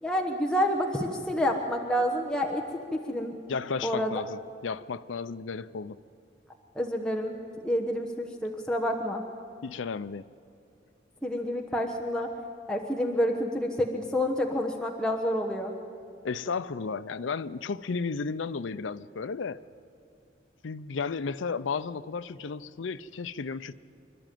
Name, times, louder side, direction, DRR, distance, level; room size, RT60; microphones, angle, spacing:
voice 1, 0.0-2.6 2.9-3.4 3.8-4.2 6.7-7.3 7.6-9.2 11.2-12.3 12.7-15.7, equal, 5° left, 0 dB, 1.1 m, -28 dB
voice 2, 3.5-6.0 9.6-10.3 16.2-19.6 20.6-23.7, left 5 dB, 85° left, 12 dB, 0.5 m, -33 dB
27.0 x 12.0 x 9.2 m, 2.5 s
head